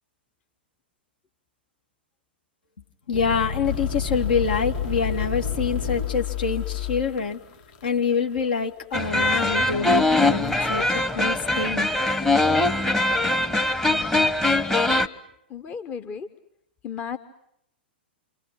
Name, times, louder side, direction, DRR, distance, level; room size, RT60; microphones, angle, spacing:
sound 1, 3.1-8.3, left 3 dB, 75° left, 5.1 m, -32 dB
voice 1, 3.1-7.4 7.8-11.9, left 5 dB, 60° left, 4 dB, 2.7 m, -26 dB
sound 2, 3.6-13.7, left 15 dB, 45° left, 1.8 m, -34 dB
sound 3, 8.9-15.1, left 2 dB, 5° left, 1.3 m, -22 dB
voice 2, 15.5-16.3 16.8-17.2, left 7 dB, 25° left, 8 dB, 1.4 m, -34 dB
29.0 x 26.5 x 7.7 m, 0.74 s
figure-of-eight pair, 100°, 6 cm